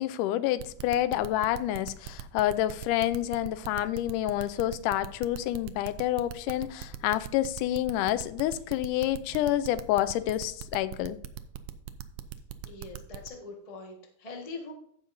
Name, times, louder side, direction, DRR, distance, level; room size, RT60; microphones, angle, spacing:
voice 1, 0.0-11.2, left 13 dB, 85° left, 2.1 m, -28 dB
sound 1, 0.6-13.3, right 12 dB, 90° right, 1.4 m, -40 dB
voice 2, 12.6-14.7, left 3 dB, 50° left, 0.4 m, -42 dB
15.5 x 5.8 x 2.6 m
omnidirectional pair, 3.6 m